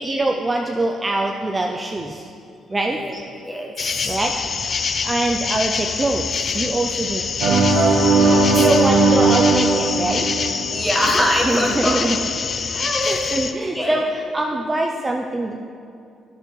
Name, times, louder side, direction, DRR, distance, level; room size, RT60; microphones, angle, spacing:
voice 1, 0.0-2.3 2.7-3.0 4.0-4.3 5.0-7.9 8.5-10.3 11.4-12.2 12.6-12.7 13.0-15.7, right 2 dB, 20° right, 2 dB, 0.4 m, -24 dB
voice 2, 3.4-4.1 8.2-8.5 8.7-8.9 10.7-12.1 12.7-14.0, equal, 5° left, -2 dB, 1.3 m, -24 dB
sound 1, 3.8-13.5, left 5 dB, 50° left, 0.4 m, -25 dB
sound 2, 7.4-11.2, right 3 dB, 90° right, 1.1 m, -17 dB
10.5 x 6.5 x 3.2 m, 2.5 s
cardioid pair, 90°, 0 cm